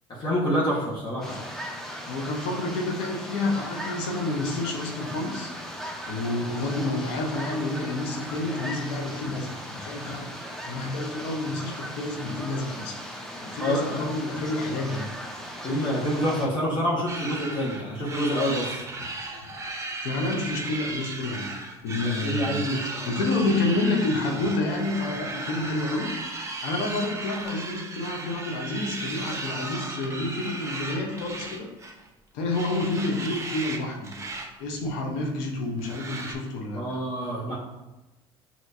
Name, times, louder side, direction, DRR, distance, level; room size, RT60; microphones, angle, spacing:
voice 1, 0.2-1.4 13.6-14.0 15.6-18.8 22.0-22.8 36.7-37.6, equal, 35° left, -6 dB, 1.4 m, -27 dB
sound 1, 1.2-16.5, equal, 5° left, 0.8 m, -38 dB
voice 2, 2.1-5.5 6.1-13.0 13.4-15.1 19.0-19.1 19.5-19.6 20.0-21.5 21.8-22.6 23.0-26.1 26.6-31.7 32.3-34.2 34.6-37.0, left 2 dB, 80° left, 1 dB, 0.9 m, -29 dB
sound 2, 17.1-32.1 32.5-33.8 34.0-34.5 34.8-34.9 35.8-36.3, right 2 dB, 25° right, 0.9 m, -35 dB
6.5 x 2.9 x 2.7 m, 1.0 s
supercardioid pair, 80°, 12 cm